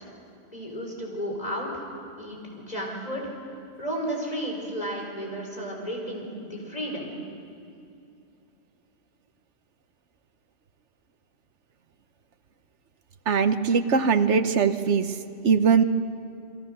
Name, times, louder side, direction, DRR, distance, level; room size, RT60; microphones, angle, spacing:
voice 1, 0.5-1.8 2.2-3.2 3.8-7.1, equal, 35° left, -1 dB, 5.4 m, -33 dB
voice 2, 13.3-15.2 15.4-15.8, right 6 dB, 70° right, 9 dB, 1.3 m, -21 dB
29.5 x 22.0 x 6.7 m, 2.6 s
omnidirectional pair, 1.2 m